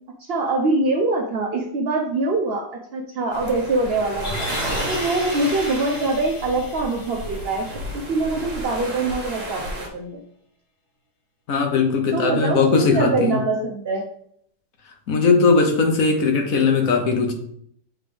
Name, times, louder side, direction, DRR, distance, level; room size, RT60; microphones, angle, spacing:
voice 1, 0.2-4.5 4.9-10.2 12.1-14.0, right 2 dB, 80° right, 2 dB, 0.5 m, -24 dB
sound 1, 3.3-9.9, right 1 dB, 40° right, 1.3 m, -32 dB
sound 2, 4.2-8.4 8.7-8.8, left 1 dB, 35° left, 1.1 m, -36 dB
voice 2, 11.5-13.4 15.1-17.3, left 4 dB, 55° left, 3 dB, 1.3 m, -19 dB
7.5 x 3.8 x 3.4 m, 0.68 s
omnidirectional pair, 1.9 m